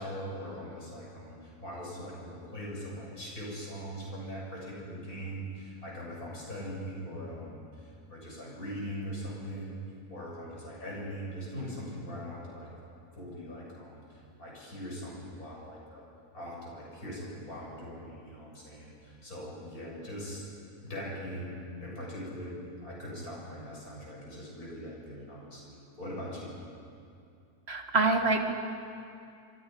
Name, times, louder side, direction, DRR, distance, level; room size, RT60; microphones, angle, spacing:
voice 1, 0.0-9.8 10.1-12.7 13.1-16.1 16.3-20.5 20.8-26.6, equal, 60° left, -4 dB, 7.5 m, -41 dB
voice 2, 27.7-28.5, right 3 dB, 40° right, 3 dB, 2.1 m, -26 dB
26.5 x 26.5 x 5.3 m, 2.5 s
omnidirectional pair, 1.7 m